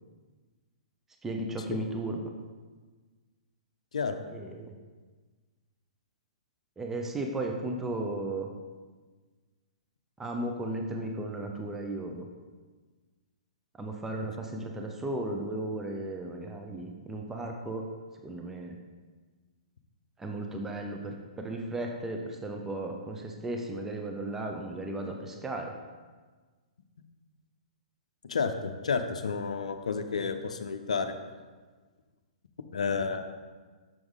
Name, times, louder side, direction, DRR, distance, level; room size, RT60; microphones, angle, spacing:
voice 1, 1.2-2.2 4.3-4.7 6.8-8.5 10.2-12.3 13.8-17.9 18.2-18.8 20.2-25.7, right 2 dB, 10° right, 2 dB, 0.6 m, -35 dB
voice 2, 28.2-31.1 32.7-33.3, left 5 dB, 70° left, 7 dB, 0.5 m, -31 dB
6.2 x 6.1 x 3.6 m, 1.4 s
figure-of-eight pair, 115°, 4 cm